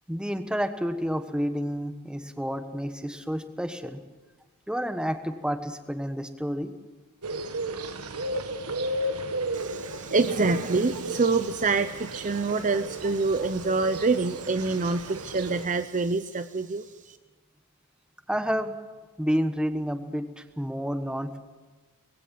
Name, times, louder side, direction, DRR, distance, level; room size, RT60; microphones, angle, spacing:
voice 1, 0.1-4.0 4.7-6.7 18.3-18.7 19.2-21.4, equal, 5° right, 8 dB, 1.3 m, -30 dB
sound 1, 7.2-15.7, right 2 dB, 85° right, 1.6 m, -34 dB
voice 2, 9.5-16.8, right 3 dB, 35° right, 10 dB, 0.7 m, -26 dB
20.5 x 16.5 x 7.7 m, 1.3 s
head